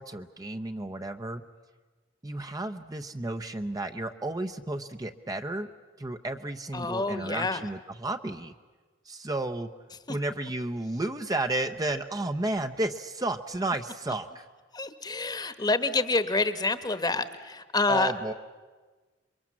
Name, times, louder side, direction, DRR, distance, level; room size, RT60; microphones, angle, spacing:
voice 1, 0.0-1.4 2.2-5.7 6.0-8.5 9.1-9.7 10.1-14.5 17.9-18.3, right 2 dB, 20° right, 7 dB, 0.7 m, -32 dB
voice 2, 6.7-7.6 14.7-18.1, left 3 dB, 25° left, 11 dB, 1.2 m, -27 dB
27.5 x 23.0 x 7.4 m, 1.4 s
head